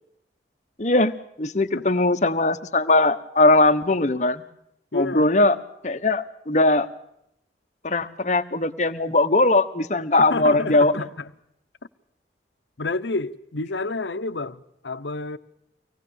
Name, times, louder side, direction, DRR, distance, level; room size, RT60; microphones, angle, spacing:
voice 1, 0.8-1.1 1.4-4.4 4.9-5.6 5.8-6.9 7.8-10.9, left 2 dB, 40° left, 1.2 m, -20 dB
voice 2, 4.9-5.3 10.2-11.3 12.8-15.4, left 3 dB, 90° left, 0.9 m, -29 dB
25.0 x 19.0 x 7.1 m
head